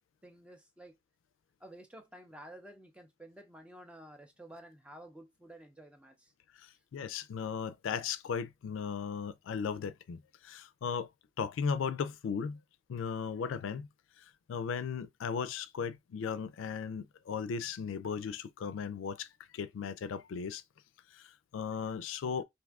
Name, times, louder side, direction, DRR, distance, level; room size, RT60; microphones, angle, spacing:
voice 1, 0.2-0.9 1.6-6.3, right 1 dB, 5° right, 0.4 m, -52 dB
voice 2, 6.6-11.1 11.4-12.6 12.9-13.9 14.5-19.3 19.5-20.6 21.1-22.4, left 6 dB, 90° left, 0.3 m, -36 dB
2.6 x 2.3 x 3.4 m
head